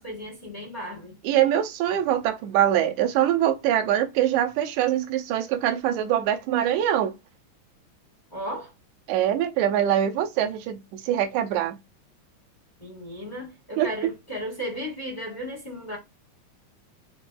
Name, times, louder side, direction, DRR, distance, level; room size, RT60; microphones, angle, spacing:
voice 1, 0.0-1.2 8.3-8.7 12.8-16.0, equal, 35° left, 0.6 m, -35 dB
voice 2, 1.2-7.1 9.1-11.8 13.8-13.9, right 11 dB, 80° right, 1.9 m, -23 dB
5.1 x 3.2 x 2.3 m
omnidirectional pair, 3.7 m